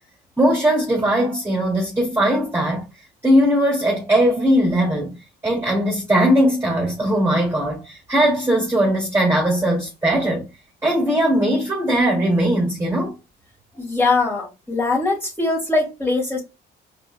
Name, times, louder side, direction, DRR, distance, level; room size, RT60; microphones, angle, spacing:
voice 1, 0.4-2.8 3.2-5.2 5.4-10.5 10.8-13.1, equal, 10° right, 2.4 m, -19 dB
voice 2, 13.7-16.4, left 3 dB, 10° left, 2.5 m, -21 dB
5.0 x 3.9 x 2.2 m
cardioid pair, 90°, 20 cm